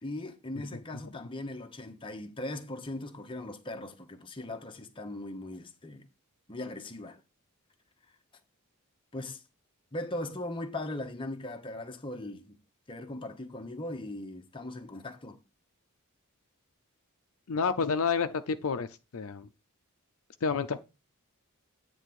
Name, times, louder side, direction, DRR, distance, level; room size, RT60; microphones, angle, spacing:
voice 1, 0.0-6.1 6.5-7.2 9.1-9.4 9.9-12.6 12.9-15.4, left 1 dB, 25° left, 0.9 m, -39 dB
voice 2, 17.5-18.9 19.1-19.5 20.4-20.8, left 5 dB, 70° left, 0.6 m, -29 dB
9.2 x 3.5 x 6.8 m
head